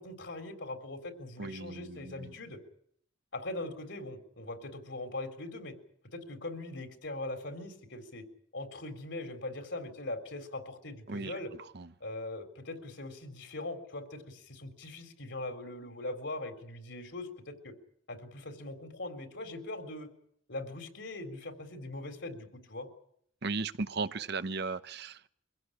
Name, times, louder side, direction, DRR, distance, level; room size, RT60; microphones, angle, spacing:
voice 1, 0.0-2.6 3.3-5.7 6.1-8.3 8.5-11.5 12.0-17.7 18.1-20.1 20.5-22.9, left 2 dB, 65° left, 8 dB, 3.6 m, -41 dB
voice 2, 1.4-2.3 11.1-11.3 11.7-11.9 23.4-25.3, right 4 dB, 60° right, 14 dB, 0.9 m, -36 dB
24.0 x 16.0 x 9.9 m, 0.69 s
head